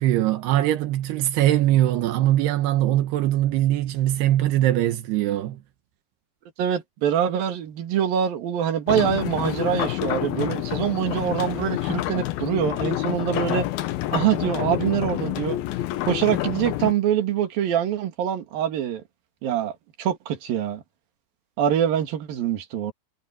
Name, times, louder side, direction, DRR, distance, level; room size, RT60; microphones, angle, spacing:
voice 1, 0.0-5.6, right 13 dB, 85° right, 3.1 m, -21 dB
voice 2, 6.6-13.7 14.1-15.6 16.0-19.0 19.4-20.8 21.6-22.9, right 9 dB, 65° right, 3.8 m, -24 dB
sound 1, 8.9-16.9, left 15 dB, 75° left, 2.6 m, -28 dB
omnidirectional pair, 4.7 m